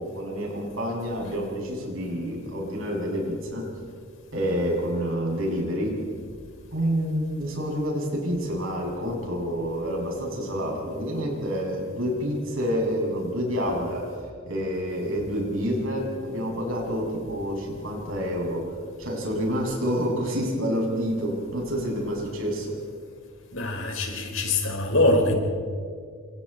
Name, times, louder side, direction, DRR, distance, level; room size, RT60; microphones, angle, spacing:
voice 1, 0.0-3.7 4.3-6.0 6.7-18.7 19.0-22.8, equal, 80° right, -1 dB, 7.3 m, -28 dB
voice 2, 23.5-25.3, left 2 dB, 85° left, 2 dB, 4.9 m, -23 dB
28.0 x 26.5 x 4.4 m, 2.1 s
head